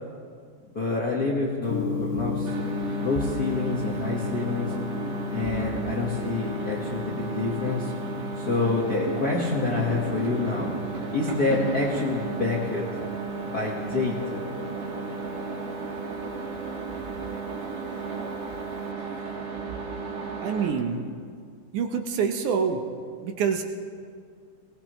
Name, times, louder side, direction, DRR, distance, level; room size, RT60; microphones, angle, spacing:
voice 1, 0.7-2.5 3.0-4.7 5.3-7.9 8.4-10.7 11.1-12.9 13.5-14.4, left 3 dB, 50° left, -4 dB, 1.1 m, -27 dB
Gong, 1.7-18.9, left 5 dB, 80° left, 2.3 m, -36 dB
sound 1, 2.5-20.7, right 5 dB, 55° right, 2.9 m, -34 dB
voice 2, 20.4-21.1 21.7-22.8 23.2-23.6, right 6 dB, 70° right, 4 dB, 2.2 m, -26 dB
21.5 x 18.0 x 3.1 m, 2.1 s
omnidirectional pair, 3.9 m